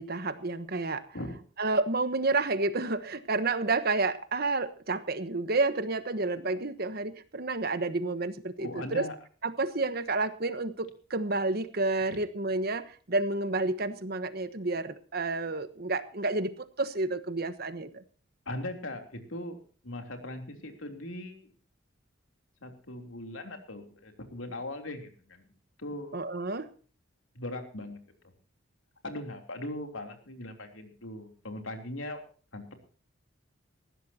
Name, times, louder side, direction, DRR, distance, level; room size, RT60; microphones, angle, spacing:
voice 1, 0.0-1.0 1.6-9.1 9.4-18.0 26.1-26.7, right 3 dB, 50° right, 11 dB, 1.2 m, -30 dB
voice 2, 8.6-9.2 18.4-19.6 19.8-21.5 22.6-25.4 25.8-26.1 27.3-28.0 28.2-28.3 29.0-32.2 32.5-32.8, left 1 dB, 85° left, 4 dB, 3.3 m, -39 dB
20.0 x 15.5 x 2.9 m, 0.41 s
head